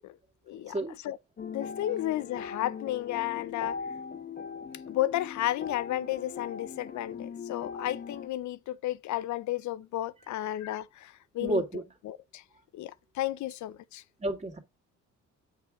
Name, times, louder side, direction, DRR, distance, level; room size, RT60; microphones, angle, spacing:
voice 1, 1.4-3.8 4.9-11.6 12.0-12.4 12.7-14.0, left 14 dB, 70° left, 0.6 m, -33 dB
sound 1, 1.4-8.3, left 6 dB, 30° left, 1.0 m, -40 dB
voice 2, 11.4-11.8 14.2-14.6, right 2 dB, 20° right, 2.2 m, -30 dB
7.8 x 5.6 x 3.6 m
cardioid pair, 90°, 30 cm